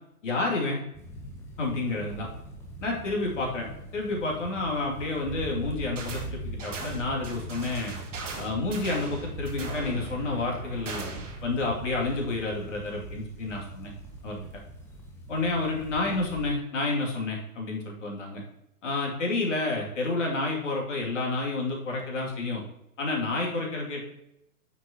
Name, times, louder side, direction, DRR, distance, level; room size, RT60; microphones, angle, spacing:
voice 1, 0.2-0.8 1.6-2.3 2.8-7.9 8.4-11.1 11.4-13.9 14.2-14.4 15.3-18.4 18.8-22.6 23.0-24.0, left 3 dB, 50° left, -2 dB, 2.7 m, -30 dB
sound 1, 0.9-16.5, right 1 dB, 5° left, 0.9 m, -41 dB
sound 2, 6.0-6.3 6.6-11.4, right 4 dB, 55° right, 1.7 m, -40 dB
9.2 x 7.2 x 3.0 m, 0.82 s
figure-of-eight pair, 125°, 46 cm